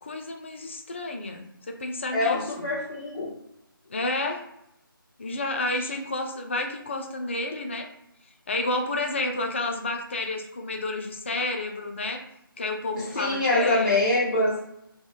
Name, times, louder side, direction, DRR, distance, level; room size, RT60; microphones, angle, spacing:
voice 1, 0.0-2.7 3.9-4.4 5.2-7.9 8.5-12.2 12.6-14.0, left 2 dB, 30° left, 3 dB, 0.4 m, -30 dB
voice 2, 2.1-3.3 12.9-14.5, left 2 dB, 55° left, -8 dB, 0.9 m, -24 dB
2.7 x 2.3 x 2.4 m, 0.79 s
figure-of-eight pair, 155°, 12 cm